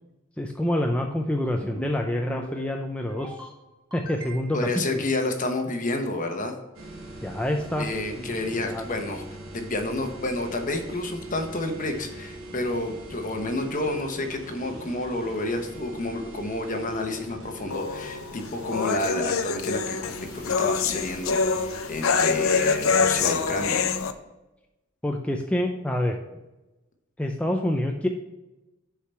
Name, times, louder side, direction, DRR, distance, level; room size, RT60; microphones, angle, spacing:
voice 1, 0.4-3.5 3.9-5.0 7.2-7.9 8.1-8.3 8.6-8.9 25.0-26.2 27.2-28.1, left 1 dB, 5° left, 2 dB, 0.5 m, -27 dB
sound 1, 1.5-1.9 2.3-2.7 3.1-3.5 3.9-4.7, right 1 dB, 20° right, 2.9 m, -41 dB
voice 2, 4.5-6.6 7.8-9.2 9.5-23.8, left 2 dB, 40° left, 5 dB, 1.0 m, -30 dB
sound 2, 6.7-23.6, right 1 dB, 85° right, 1.4 m, -42 dB
sound 3, 17.7-24.1, left 5 dB, 90° left, 0.6 m, -25 dB
6.8 x 4.8 x 5.5 m, 1.0 s
head